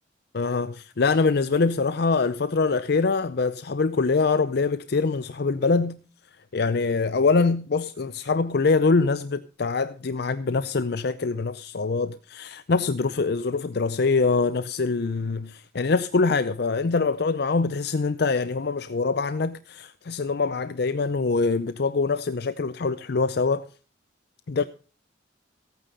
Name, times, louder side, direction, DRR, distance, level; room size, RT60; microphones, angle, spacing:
voice 1, 0.3-6.0 6.5-23.7 24.5-24.6, left 4 dB, 55° left, 0.5 m, -24 dB
15.5 x 9.3 x 5.3 m
head